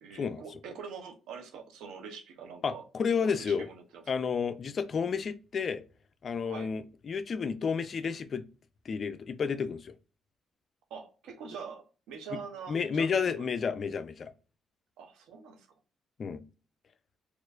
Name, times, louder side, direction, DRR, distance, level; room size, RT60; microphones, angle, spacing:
voice 1, 0.0-2.9 3.2-4.0 6.4-6.7 10.9-13.4 15.0-15.7, right 6 dB, 90° right, 0.7 m, -44 dB
voice 2, 2.6-3.7 4.1-5.8 6.2-8.4 8.9-9.9 12.7-14.3 16.2-16.4, left 6 dB, 50° left, 0.4 m, -31 dB
4.2 x 2.5 x 2.4 m
cardioid pair, 90°, 0 cm